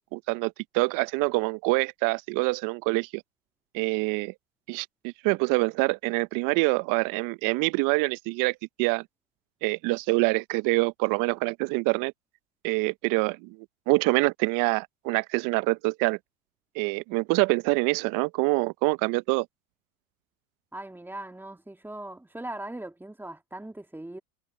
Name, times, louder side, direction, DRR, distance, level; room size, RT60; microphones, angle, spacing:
voice 1, 0.0-3.2 3.7-4.3 4.7-9.0 9.6-12.1 12.6-13.6 13.9-16.2 16.8-19.5, right 26 dB, 50° right, 0.7 m, -26 dB
voice 2, 20.7-24.2, right 1 dB, 5° right, 2.5 m, -39 dB
hypercardioid pair, 95°, 42 cm